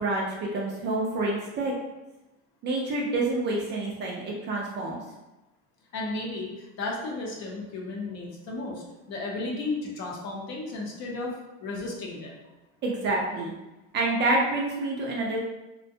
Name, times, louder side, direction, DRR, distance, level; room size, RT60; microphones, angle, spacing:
voice 1, 0.0-1.7 2.6-5.0 12.8-13.5 13.9-15.4, right 2 dB, 30° right, -2 dB, 0.4 m, -27 dB
voice 2, 5.9-11.3 11.6-12.3, left 2 dB, 50° left, -1 dB, 0.7 m, -34 dB
2.5 x 2.2 x 2.6 m, 1.0 s
supercardioid pair, 135°, 36 cm